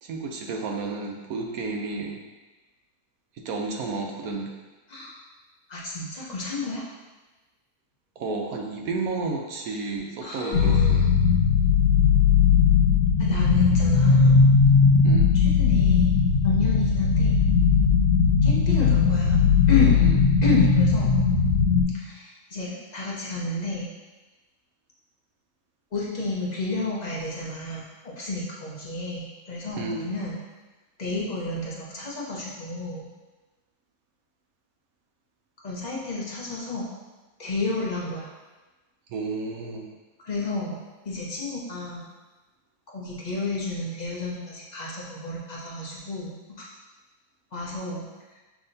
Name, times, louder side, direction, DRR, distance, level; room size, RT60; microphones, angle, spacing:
voice 1, 0.0-2.2 3.4-4.5 8.2-11.0 15.0-15.3 20.0-20.1 29.7-30.1 39.1-39.9, right 3 dB, 70° right, 1 dB, 0.9 m, -31 dB
voice 2, 5.7-6.9 10.2-11.1 13.2-14.4 15.3-16.1 16.4-17.4 18.4-20.0 20.4-21.2 21.9-23.9 25.9-30.4 31.0-33.1 35.6-36.9 37.4-38.3 40.2-40.8 41.0-42.0 42.9-46.6 47.5-48.1, left 2 dB, 45° left, -5 dB, 0.5 m, -31 dB
sound 1, 10.5-21.8, left 5 dB, 80° left, 1.6 m, -19 dB
7.0 x 2.7 x 2.6 m, 1.2 s
omnidirectional pair, 1.7 m